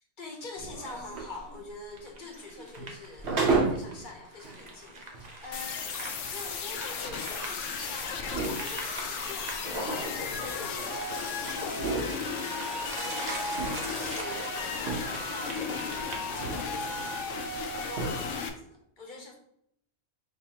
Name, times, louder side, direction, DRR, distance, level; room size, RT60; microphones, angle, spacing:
voice 1, 0.2-5.9 6.2-8.2 8.5-13.4 13.7-17.5 17.9-19.4, left 3 dB, 45° left, 2 dB, 1.0 m, -45 dB
sound 1, 0.6-4.0 4.4-4.5 5.1-5.2 5.7-11.2 11.5-12.9 13.3-15.3 15.6-16.7 17.1-17.2 17.5-17.6 17.9-18.4, right 3 dB, 65° right, 1.2 m, -34 dB
sound 2, 1.9-17.4, right 1 dB, 40° right, 0.8 m, -42 dB
sound 3, 5.5-18.5, left 5 dB, 90° left, 0.9 m, -35 dB
4.8 x 3.2 x 2.9 m, 0.72 s
omnidirectional pair, 1.2 m